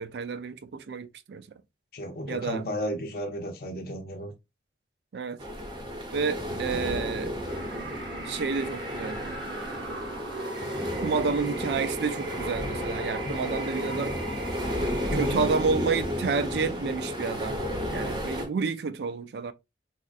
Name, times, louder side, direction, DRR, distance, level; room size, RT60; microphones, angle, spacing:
voice 1, 0.0-1.4 2.3-2.6 5.1-5.4 6.1-7.3 8.3-9.2 11.0-14.2 15.1-17.6 17.9-19.5, right 5 dB, 60° right, 0.3 m, -30 dB
voice 2, 1.9-4.3 15.1-15.4, equal, 50° left, 0.6 m, -33 dB
sound 1, 5.4-18.5, equal, 25° right, 0.7 m, -33 dB
sound 2, 7.4-16.5, right 2 dB, 85° right, 1.0 m, -39 dB
4.1 x 2.4 x 2.4 m
head